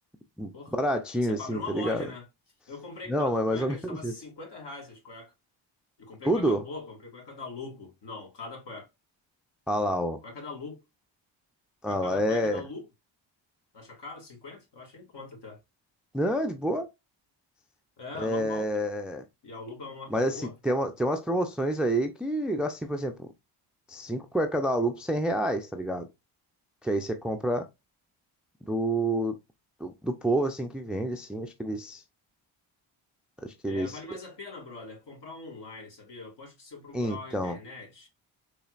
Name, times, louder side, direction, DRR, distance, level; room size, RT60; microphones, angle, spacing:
voice 1, 0.4-2.0 3.1-4.1 6.2-6.6 9.7-10.2 11.8-12.6 16.1-16.9 18.2-19.2 20.1-23.3 23.9-26.1 26.8-27.7 28.7-29.3 29.8-32.0 33.4-34.0 36.9-37.6, right 1 dB, ahead, 0.4 m, -28 dB
voice 2, 1.2-2.3 2.7-5.3 6.0-8.9 10.2-10.8 11.9-12.9 13.7-15.6 18.0-18.7 19.4-20.5 33.7-38.1, left 3 dB, 60° left, 2.1 m, -42 dB
4.1 x 3.3 x 2.4 m
supercardioid pair, 65°, 47 cm